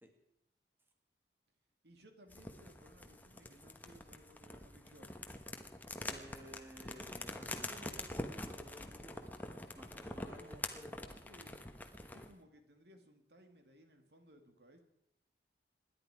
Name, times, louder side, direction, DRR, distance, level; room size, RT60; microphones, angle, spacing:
voice 1, 1.8-5.2 10.2-10.6 11.1-11.6 12.1-14.8, right 1 dB, 70° right, 5 dB, 2.2 m, -61 dB
sound 1, 2.3-12.3, left 2 dB, 10° left, 1.1 m, -46 dB
voice 2, 6.0-9.2 9.7-11.0, equal, 15° right, 3 dB, 2.1 m, -55 dB
26.0 x 11.0 x 4.9 m, 0.78 s
head